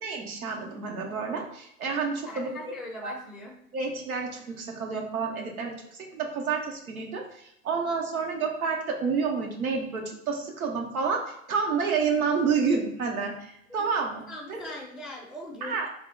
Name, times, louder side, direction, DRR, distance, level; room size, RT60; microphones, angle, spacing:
voice 1, 0.0-2.8 3.0-3.1 3.7-14.2 14.5-14.6 15.6-15.9, right 5 dB, 85° right, 1 dB, 0.7 m, -29 dB
voice 2, 2.2-3.5 14.3-15.8, left 1 dB, ahead, -3 dB, 0.5 m, -40 dB
3.4 x 2.0 x 3.7 m, 0.74 s
hypercardioid pair, 85°, 42 cm